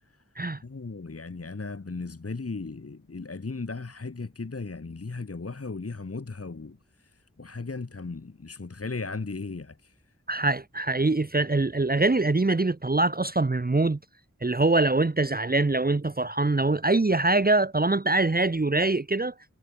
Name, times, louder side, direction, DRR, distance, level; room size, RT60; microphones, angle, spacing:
voice 1, 0.6-10.1, left 3 dB, 50° left, 1.4 m, -37 dB
voice 2, 10.3-14.0 14.4-19.3, right 2 dB, 30° right, 0.9 m, -23 dB
wide cardioid pair, 50°, 30 cm